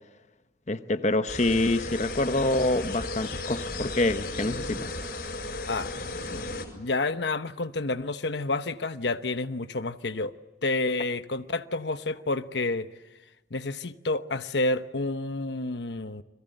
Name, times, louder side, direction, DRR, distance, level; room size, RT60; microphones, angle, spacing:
voice 1, 0.7-4.9, left 2 dB, 40° left, 0.9 m, -26 dB
sound 1, 1.3-6.7, left 2 dB, 60° left, 5.2 m, -35 dB
voice 2, 6.3-10.3 10.6-12.9 13.5-16.2, left 2 dB, 85° left, 1.0 m, -29 dB
29.5 x 22.5 x 7.9 m
head